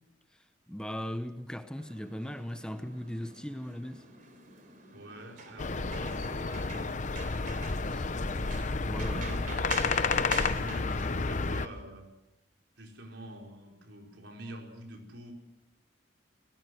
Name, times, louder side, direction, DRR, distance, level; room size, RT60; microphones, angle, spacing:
voice 1, 0.7-4.1 7.9-8.1 8.8-9.2, equal, 5° left, 0.8 m, -38 dB
sound 1, 1.8-11.8, right 4 dB, 50° right, 3.7 m, -47 dB
voice 2, 4.9-7.3 9.0-9.6 10.1-12.1 12.8-15.3, right 1 dB, 70° right, 5.0 m, -46 dB
sound 2, 5.6-11.7, left 4 dB, 40° left, 0.9 m, -31 dB
29.5 x 18.5 x 6.4 m
head